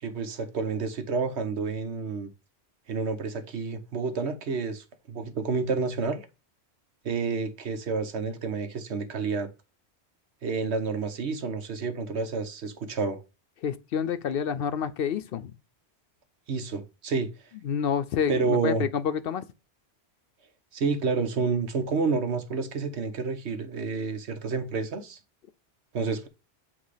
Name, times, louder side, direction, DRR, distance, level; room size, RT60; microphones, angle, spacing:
voice 1, 0.0-2.3 2.9-6.2 7.0-9.5 10.4-13.2 16.5-17.3 18.3-18.8 20.7-25.2 25.9-26.3, right 4 dB, 80° right, 1.3 m, -29 dB
voice 2, 13.6-15.5 17.6-19.4, left 7 dB, 65° left, 0.7 m, -28 dB
8.0 x 2.9 x 4.9 m
omnidirectional pair, 1.1 m